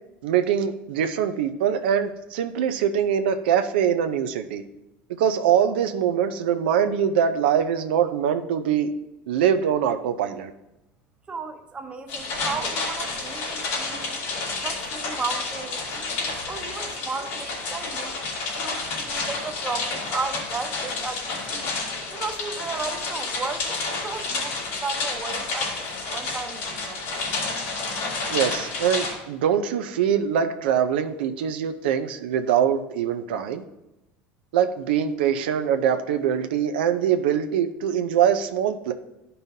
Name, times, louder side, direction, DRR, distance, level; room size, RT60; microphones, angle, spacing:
voice 1, 0.2-4.6 5.2-8.9 9.3-10.5 28.3-33.6 34.5-38.9, right 8 dB, 90° right, 7 dB, 0.5 m, -23 dB
voice 2, 11.3-14.2 14.6-18.2 18.6-21.7 22.1-27.2, right 4 dB, 20° right, 5 dB, 0.8 m, -34 dB
sound 1, 12.1-29.1, left 3 dB, 75° left, 2.8 m, -30 dB
12.0 x 5.4 x 2.7 m, 0.91 s
supercardioid pair, 105°, 5 cm